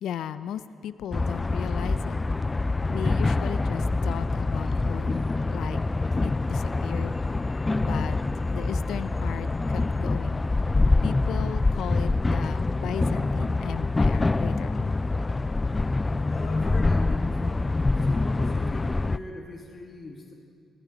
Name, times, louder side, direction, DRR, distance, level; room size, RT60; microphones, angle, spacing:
voice 1, 0.0-2.2 2.9-5.8 6.2-7.2 7.8-8.2 8.5-10.4 11.0-14.9 18.0-18.2, left 10 dB, 85° left, 14 dB, 0.5 m, -36 dB
sound 1, 1.1-19.2, left 3 dB, 25° left, 0.3 m, -25 dB
sound 2, 1.1-8.7, right 2 dB, 40° right, 2.8 m, -57 dB
voice 2, 16.3-17.8 18.0-20.3, left 2 dB, 40° left, 0 dB, 1.6 m, -41 dB
20.0 x 17.5 x 4.0 m, 2.4 s
cardioid pair, 95°, 0 cm